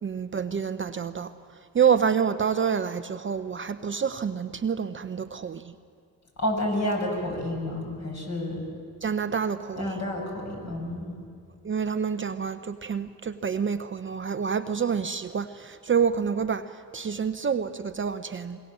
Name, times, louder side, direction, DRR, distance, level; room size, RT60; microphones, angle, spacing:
voice 1, 0.0-1.3 1.7-5.7 9.0-10.0 11.6-18.6, right 7 dB, 30° right, 9 dB, 0.8 m, -27 dB
voice 2, 6.4-8.6 9.7-11.2, left 1 dB, 45° left, 0 dB, 7.7 m, -30 dB
24.5 x 21.5 x 7.6 m, 2.2 s
supercardioid pair, 80°, 40 cm